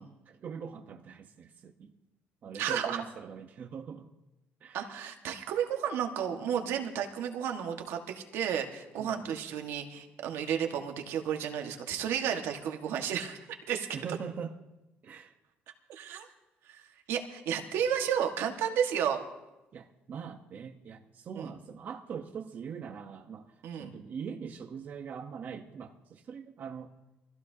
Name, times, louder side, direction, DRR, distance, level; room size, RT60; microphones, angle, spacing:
voice 1, 0.0-1.9 2.4-4.1 4.6-4.9 9.0-9.4 13.9-14.5 15.0-15.3 19.7-26.9, right 6 dB, 45° right, 4 dB, 0.9 m, -42 dB
voice 2, 2.6-3.0 4.7-13.9 15.9-16.3 16.7-19.2 21.3-21.5 23.6-23.9, right 8 dB, 80° right, 4 dB, 1.5 m, -32 dB
23.5 x 15.5 x 2.8 m, 0.98 s
cardioid pair, 135°, 4 cm